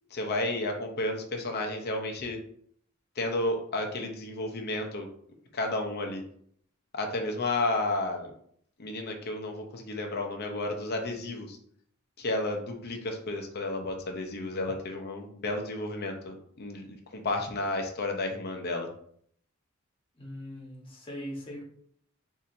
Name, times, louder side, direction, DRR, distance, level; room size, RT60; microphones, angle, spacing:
voice 1, 0.1-2.4 3.2-5.1 5.5-6.2 6.9-8.3 8.8-11.6 12.2-18.9, left 2 dB, 50° left, 3 dB, 0.6 m, -32 dB
voice 2, 20.2-21.6, equal, 25° left, -4 dB, 1.0 m, -40 dB
4.2 x 2.7 x 2.6 m, 0.63 s
head